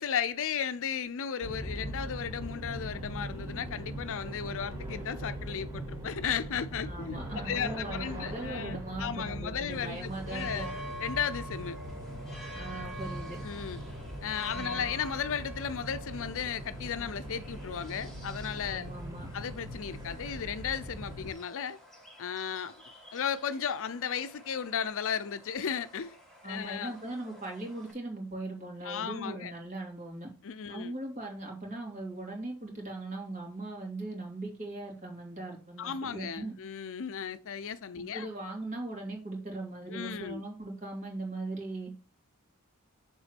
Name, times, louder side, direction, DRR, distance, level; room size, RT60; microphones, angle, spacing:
voice 1, 0.0-10.7 11.0-11.8 13.4-13.8 14.2-18.9 19.3-21.8 22.2-22.7 23.1-26.2 26.4-27.0 28.8-29.5 30.4-30.9 35.8-38.3 39.9-40.4, left 7 dB, 60° left, 0.5 m, -35 dB
sound 1, 1.4-21.3, right 1 dB, 15° right, 2.9 m, -41 dB
voice 2, 6.9-10.7 12.5-13.4 14.5-14.8 18.6-19.3 26.4-30.3 30.7-36.5 38.1-41.9, right 2 dB, 35° right, 2.8 m, -39 dB
sound 2, 9.7-27.9, equal, ahead, 2.5 m, -48 dB
7.1 x 3.7 x 6.0 m
head